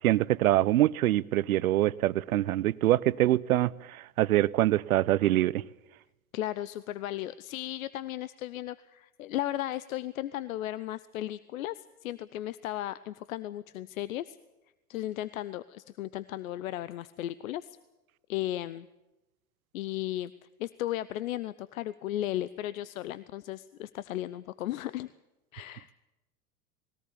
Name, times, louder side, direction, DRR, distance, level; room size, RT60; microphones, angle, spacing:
voice 1, 0.0-5.6, right 14 dB, 70° right, 0.8 m, -25 dB
voice 2, 6.3-14.4 14.9-17.8 18.3-18.9 19.7-25.1 25.5-25.9, left 14 dB, 65° left, 0.8 m, -35 dB
20.5 x 18.0 x 8.5 m
hypercardioid pair, 90°, 44 cm